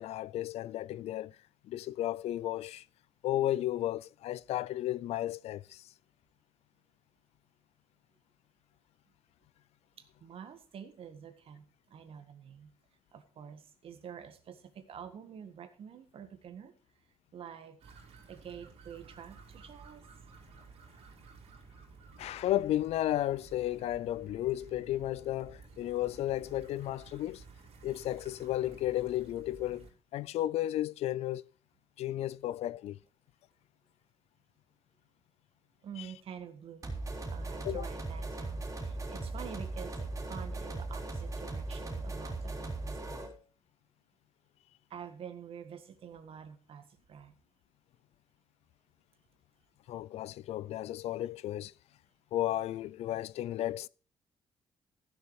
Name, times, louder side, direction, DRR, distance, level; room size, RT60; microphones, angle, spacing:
voice 1, 0.0-1.3 1.7-2.8 3.2-5.8 22.2-27.4 27.8-31.4 32.0-33.0 37.6-37.9 49.9-51.7 52.3-53.9, left 13 dB, 90° left, 0.4 m, -33 dB
voice 2, 10.0-12.7 13.1-16.7 17.3-17.8 18.3-20.1 35.8-36.8 37.3-43.3 44.9-47.3, right 8 dB, 65° right, 1.7 m, -48 dB
sound 1, 17.8-29.9, right 4 dB, 80° right, 4.0 m, -54 dB
sound 2, 36.8-43.3, right 2 dB, 30° right, 3.8 m, -38 dB
15.0 x 6.8 x 4.7 m
cardioid pair, 120°, 10 cm